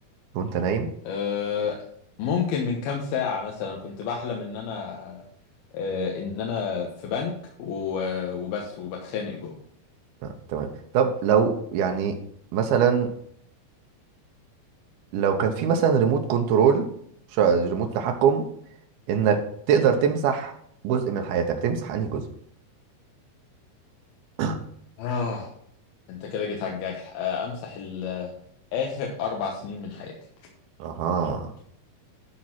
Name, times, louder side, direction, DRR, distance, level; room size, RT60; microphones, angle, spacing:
voice 1, 0.3-0.9 10.5-10.7 10.9-12.2 12.5-13.1 15.1-16.9 17.3-18.4 19.1-20.5 20.8-22.2 24.4-24.6 30.8-31.5, right 7 dB, 85° right, 4 dB, 2.9 m, -23 dB
voice 2, 1.0-1.8 2.2-5.2 5.7-7.3 7.6-9.5 25.0-25.5 26.1-28.3 28.7-30.2, left 6 dB, 85° left, 0 dB, 3.1 m, -30 dB
12.5 x 4.4 x 5.8 m, 0.67 s
omnidirectional pair, 4.3 m